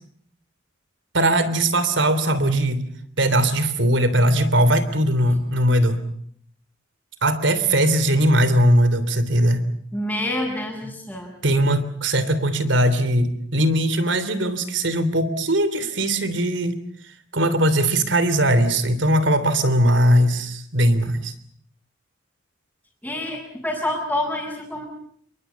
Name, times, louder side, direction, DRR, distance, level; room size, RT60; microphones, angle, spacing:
voice 1, 1.1-2.9 3.2-6.0 7.2-9.6 11.4-16.8 17.3-21.3, right 1 dB, 70° right, 13 dB, 3.2 m, -20 dB
voice 2, 9.9-11.3 23.0-24.9, left 1 dB, 5° left, -5 dB, 6.8 m, -27 dB
28.0 x 23.0 x 7.1 m, 0.64 s
head